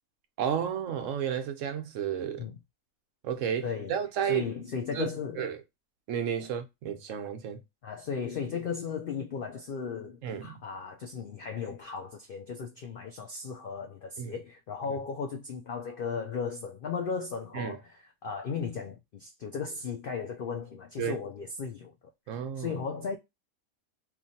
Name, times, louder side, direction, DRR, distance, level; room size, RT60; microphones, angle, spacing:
voice 1, 0.4-2.4 3.2-4.5 4.9-5.1 5.4-5.6 6.1-7.6 10.2-10.6 14.2-14.3 14.9-15.0 17.5-17.8 21.0-21.2 22.3-22.8, right 8 dB, 70° right, 0.9 m, -32 dB
voice 2, 3.6-3.9 4.2-5.4 6.4-6.5 7.8-21.9 22.3-23.2, left 6 dB, 80° left, 0.5 m, -36 dB
3.0 x 2.5 x 2.6 m
omnidirectional pair, 1.5 m